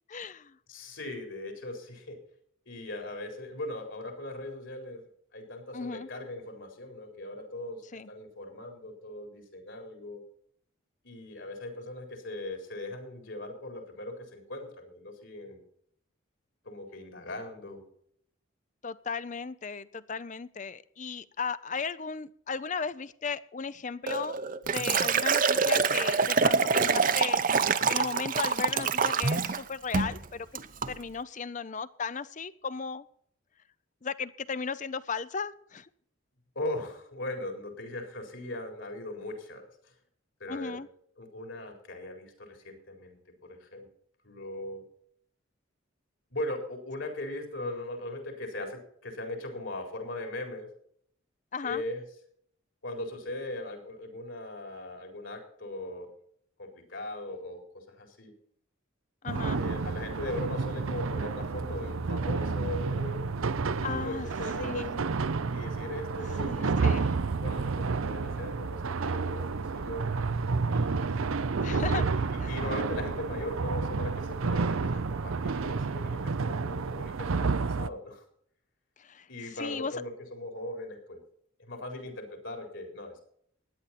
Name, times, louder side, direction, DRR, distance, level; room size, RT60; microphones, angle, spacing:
voice 1, 0.1-0.6 5.7-6.1 7.9-8.1 18.8-24.4 24.7-27.5 27.9-30.5 30.9-33.0 34.0-35.9 40.5-40.9 51.5-51.8 59.2-59.6 63.8-64.3 64.6-65.1 66.4-67.1 71.6-72.0 72.4-72.5 79.0-80.0, left 5 dB, 35° left, 16 dB, 0.5 m, -36 dB
voice 2, 0.7-2.2 2.7-5.1 5.3-10.2 11.0-15.6 16.6-17.8 36.6-39.9 40.4-40.8 41.2-43.2 43.5-43.9 44.2-44.8 46.3-50.7 51.6-52.0 52.8-56.1 56.6-58.3 59.6-64.9 65.5-66.8 67.4-70.0 70.7-71.2 71.7-78.2 79.3-81.2 81.6-83.2, left 1 dB, 65° left, 4 dB, 4.2 m, -39 dB
Liquid, 24.1-29.6 29.9-30.2 30.6-30.9, right 5 dB, 40° right, 0.8 m, -26 dB
sound 1, 59.3-77.9, right 4 dB, 80° right, 0.6 m, -30 dB
16.5 x 10.5 x 4.3 m, 0.64 s
head